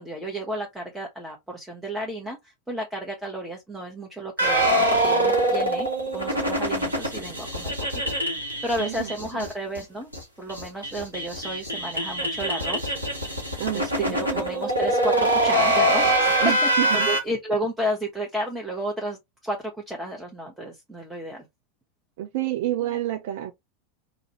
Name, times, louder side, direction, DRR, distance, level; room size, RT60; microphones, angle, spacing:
voice 1, 0.0-8.0 8.3-10.1 10.4-12.9 13.7-21.5, right 1 dB, 5° right, 0.8 m, -32 dB
sound 1, 4.4-9.5 9.7-9.8 10.1-10.2 10.5-17.2, right 1 dB, 85° right, 0.9 m, -24 dB
voice 2, 8.8-9.5 13.6-14.4 16.4-17.1 22.2-23.5, right 14 dB, 55° right, 0.3 m, -29 dB
2.5 x 2.4 x 2.9 m
figure-of-eight pair, 85°, 0 cm